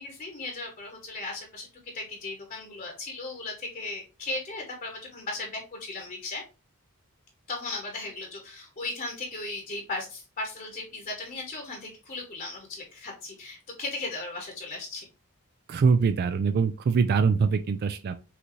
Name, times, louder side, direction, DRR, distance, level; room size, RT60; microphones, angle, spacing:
voice 1, 0.0-6.4 7.5-15.1, left 2 dB, 40° left, 1.0 m, -37 dB
voice 2, 15.7-18.2, right 5 dB, 45° right, 0.3 m, -23 dB
5.7 x 2.6 x 3.0 m
head